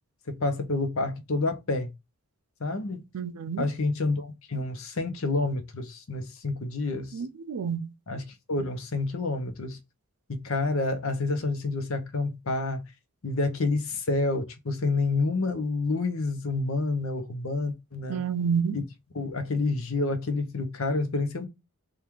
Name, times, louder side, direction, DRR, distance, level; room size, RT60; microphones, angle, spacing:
voice 1, 0.3-1.9 2.6-3.0 3.6-7.1 8.1-9.8 10.3-12.8 13.2-18.2 18.7-18.8 19.1-21.5, left 3 dB, 65° left, 0.8 m, -28 dB
voice 2, 3.1-3.6 7.1-7.9 18.1-18.8, right 6 dB, 85° right, 0.4 m, -29 dB
3.5 x 2.4 x 4.5 m
head